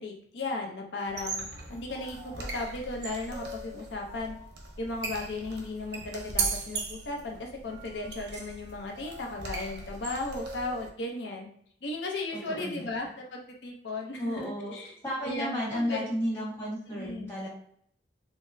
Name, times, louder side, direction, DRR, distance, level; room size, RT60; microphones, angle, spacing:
voice 1, 0.0-4.3 4.8-11.5 11.8-14.9 15.2-16.5 16.9-17.3, left 2 dB, 85° left, 1 dB, 0.6 m, -36 dB
sound 1, 1.1-10.9, right 4 dB, 70° right, 0.6 m, -38 dB
voice 2, 12.3-12.9 14.2-14.7 15.0-17.5, equal, 15° left, -7 dB, 1.4 m, -33 dB
3.8 x 2.0 x 2.6 m, 0.64 s
head